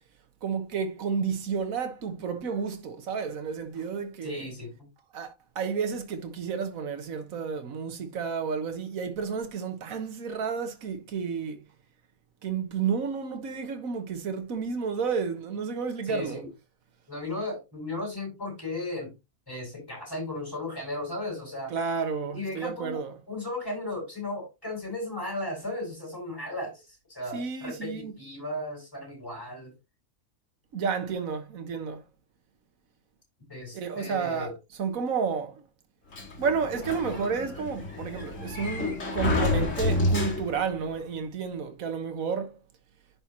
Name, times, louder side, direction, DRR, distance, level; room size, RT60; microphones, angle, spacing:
voice 1, 0.4-4.5 5.1-11.6 12.4-16.4 21.7-23.1 27.3-28.1 30.7-32.0 33.7-34.5 34.8-35.6 36.4-42.6, right 6 dB, 75° right, 1.6 m, -31 dB
voice 2, 4.2-4.9 16.1-16.5 17.1-19.1 19.5-21.7 22.3-23.0 23.3-26.8 27.1-29.7 33.5-34.5, left 2 dB, 15° left, 6.1 m, -35 dB
Sliding door, 36.1-40.8, left 2 dB, 60° left, 2.4 m, -29 dB
10.5 x 5.4 x 2.9 m
omnidirectional pair, 1.5 m